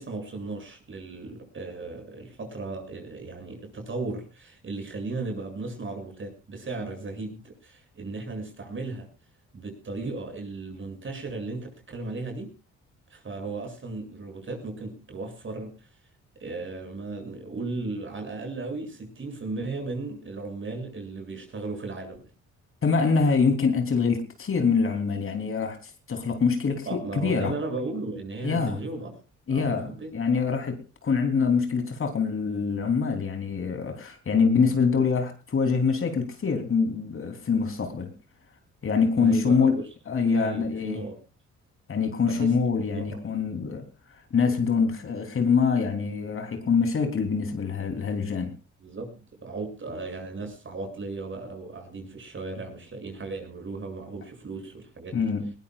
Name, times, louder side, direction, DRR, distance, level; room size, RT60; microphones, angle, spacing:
voice 1, 0.0-9.1 9.5-12.5 13.1-15.9 16.4-22.2 26.8-29.1 29.5-30.1 39.2-39.8 40.3-41.2 42.2-42.5 42.9-43.2 43.7-43.8 48.8-55.3, right 3 dB, 40° right, 7.6 m, -36 dB
voice 2, 22.8-27.5 28.4-28.8 29.5-38.1 38.8-39.8 40.1-41.0 41.9-43.9 44.3-48.5 55.1-55.5, left 5 dB, 45° left, 3.5 m, -25 dB
21.0 x 20.0 x 2.5 m
cardioid pair, 90°, 30 cm